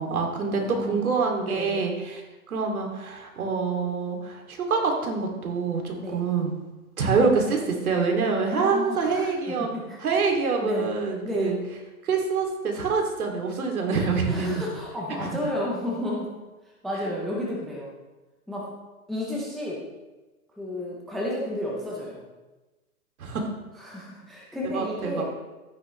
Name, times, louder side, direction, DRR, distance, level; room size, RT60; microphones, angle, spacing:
voice 1, 0.0-2.2 2.5-6.6 7.0-9.7 10.0-11.5 12.0-14.6 15.2-15.3 23.2-23.5 24.7-25.2, right 4 dB, 70° right, 2 dB, 2.6 m, -26 dB
voice 2, 0.5-1.1 1.4-1.8 6.0-6.2 8.6-10.2 10.6-10.9 11.2-11.5 14.3-16.3 16.8-17.9 18.5-18.7 19.1-19.8 20.6-22.2 23.8-25.2, left 1 dB, ahead, -3 dB, 0.4 m, -32 dB
12.5 x 9.6 x 3.1 m, 1.1 s
hypercardioid pair, 135°, 44 cm